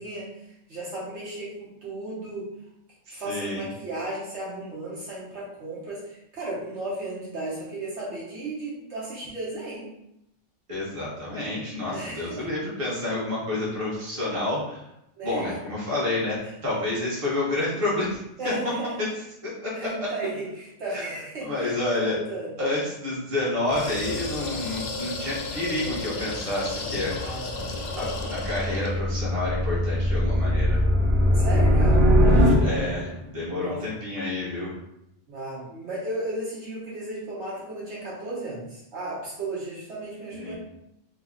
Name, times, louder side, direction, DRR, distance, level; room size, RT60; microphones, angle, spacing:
voice 1, 0.0-2.5 3.1-9.9 11.9-12.5 15.2-15.6 16.4-16.5 18.4-19.1 19.7-22.5 27.2-28.1 31.3-32.1 33.5-33.9 35.3-40.5, right 2 dB, 70° right, -7 dB, 1.3 m, -35 dB
voice 2, 3.1-3.6 10.7-14.8 15.2-16.4 16.6-18.5 19.0-19.1 19.4-19.7 20.9-21.0 21.4-22.2 22.6-27.1 28.0-30.8 32.6-34.7 40.3-40.5, left 2 dB, 30° right, -7 dB, 1.1 m, -29 dB
sound 1, 23.6-29.0, left 3 dB, 65° left, 0.4 m, -33 dB
sound 2, 27.8-33.1, equal, 45° right, 1.1 m, -21 dB
3.2 x 2.1 x 3.7 m, 0.82 s
omnidirectional pair, 1.3 m